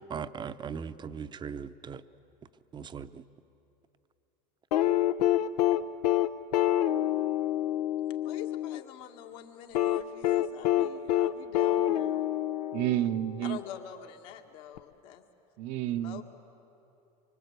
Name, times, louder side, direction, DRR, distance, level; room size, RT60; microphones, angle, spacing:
voice 1, 0.1-2.0 2.7-3.3, right 6 dB, 25° right, 11 dB, 0.7 m, -39 dB
sound 1, 4.7-8.8 9.7-13.3 14.8-14.9, left 13 dB, 85° left, 0.7 m, -27 dB
voice 2, 8.2-12.3 13.4-15.2 15.9-16.2, left 10 dB, 65° left, 4 dB, 2.1 m, -45 dB
voice 3, 12.7-13.6 15.6-16.2, right 13 dB, 55° right, 9 dB, 0.8 m, -30 dB
24.5 x 24.5 x 8.2 m, 2.8 s
supercardioid pair, 115°, 20 cm